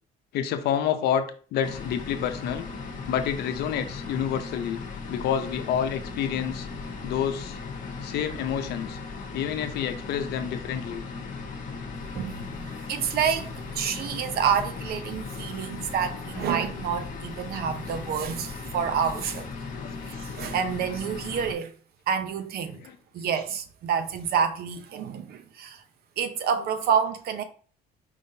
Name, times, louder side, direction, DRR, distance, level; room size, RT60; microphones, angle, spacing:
voice 1, 0.3-1.2 1.5-2.7 3.1-4.8 5.1-6.7 7.0-7.6 8.0-9.0 9.3-11.0 14.0-14.1 19.7-19.9 22.7-23.0, left 9 dB, 75° left, 0.7 m, -28 dB
sound 1, 1.6-21.5, left 4 dB, 50° left, 1.2 m, -37 dB
voice 2, 12.0-19.5 20.1-21.7 22.1-22.8 23.1-25.8 26.2-27.4, right 7 dB, 65° right, 0.7 m, -28 dB
5.0 x 3.6 x 2.7 m
cardioid pair, 110°, 17 cm